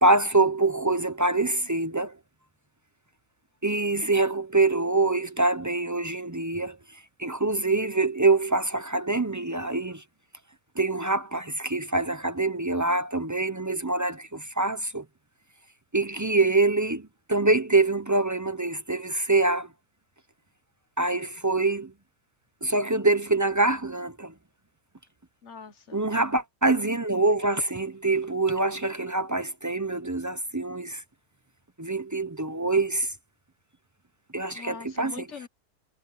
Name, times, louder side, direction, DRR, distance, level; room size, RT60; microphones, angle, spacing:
voice 1, 0.0-2.2 3.6-6.8 7.2-10.0 10.8-15.0 15.9-19.7 21.0-21.9 22.6-24.3 25.9-31.0 31.8-33.1 34.3-35.2, right 2 dB, 25° right, 0.4 m, -25 dB
voice 2, 25.4-26.0 34.5-35.5, left 6 dB, 50° left, 1.4 m, -42 dB
omnidirectional pair, 1.6 m